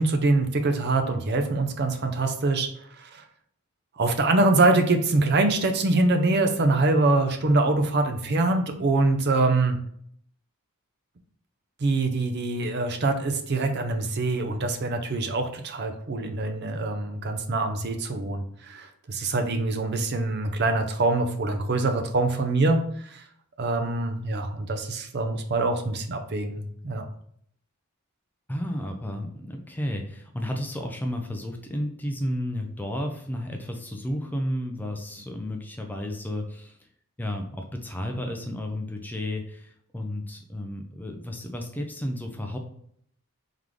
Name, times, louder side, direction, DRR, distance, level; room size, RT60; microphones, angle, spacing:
voice 1, 0.0-2.7 3.0-3.2 4.0-9.8 11.8-23.2 23.6-27.0, right 2 dB, 50° right, 6 dB, 0.6 m, -24 dB
voice 2, 28.5-36.8 37.2-42.6, left 1 dB, 10° left, 3 dB, 0.4 m, -32 dB
3.7 x 3.5 x 3.1 m, 0.65 s
head